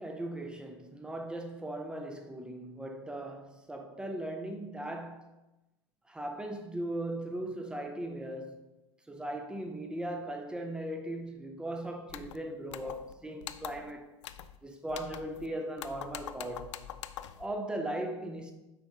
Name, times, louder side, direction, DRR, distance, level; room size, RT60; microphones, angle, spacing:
voice 1, 0.0-5.3 6.1-8.6 9.1-14.1 14.6-16.8 17.4-18.5, right 1 dB, 5° right, 0.6 m, -38 dB
sound 1, 12.1-12.4 12.7-13.1 13.4-13.9 14.2-14.6 14.9-15.5 15.8-17.4, left 11 dB, 55° left, 0.4 m, -44 dB
9.0 x 3.6 x 3.8 m
figure-of-eight pair, 90°, 18 cm